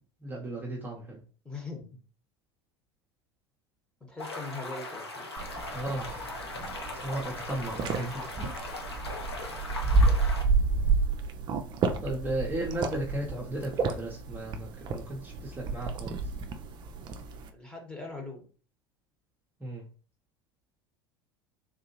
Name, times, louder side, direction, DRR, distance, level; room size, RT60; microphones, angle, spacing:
voice 1, 0.2-1.2 5.7-6.4 6.9-8.5 12.0-16.1 19.6-19.9, right 1 dB, 15° right, -4 dB, 0.8 m, -35 dB
voice 2, 1.4-1.9 4.1-5.3 9.8-10.2 17.5-18.5, left 3 dB, 5° left, 1 dB, 1.2 m, -41 dB
sound 1, 4.2-10.4, left 2 dB, 80° left, 0.8 m, -39 dB
sound 2, 5.4-17.5, right 3 dB, 35° right, 0.5 m, -30 dB
3.6 x 2.6 x 2.9 m, 0.40 s
figure-of-eight pair, 75°, 13 cm